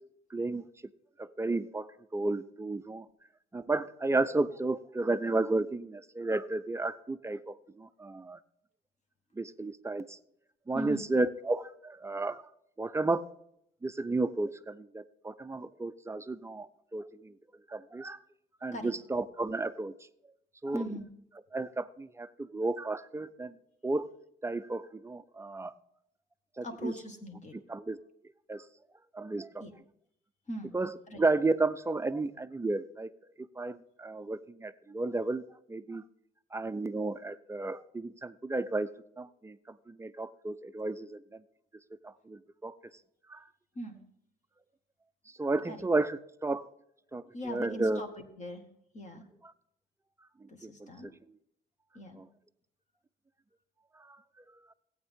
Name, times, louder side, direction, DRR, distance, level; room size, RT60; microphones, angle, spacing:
voice 1, 0.3-0.6 1.2-3.1 3.5-8.4 9.4-10.2 10.7-12.4 12.8-13.3 13.8-17.3 17.7-18.2 18.6-19.9 20.6-20.8 21.5-23.6 23.8-24.1 24.4-25.7 26.6-26.9 27.7-28.0 28.5-28.7 29.1-29.6 30.7-33.1 33.6-35.4 35.7-36.0 36.5-38.9 39.2-41.4 42.0-42.7 43.3-43.4 45.4-46.7 47.1-48.0 50.4-50.5 50.8-50.9 52.2-52.3 54.0-54.2, right 2 dB, 15° right, 13 dB, 0.5 m, -33 dB
voice 2, 10.7-11.0 18.7-18.9 20.7-21.0 26.6-27.6 29.6-29.7 30.5-30.7 31.1-31.2 43.7-44.0 45.7-45.8 47.3-48.7 48.9-49.3 50.5-51.2 51.9-52.2, equal, 35° left, 4 dB, 1.7 m, -40 dB
15.0 x 8.8 x 3.6 m, 0.74 s
cardioid pair, 90°, 20 cm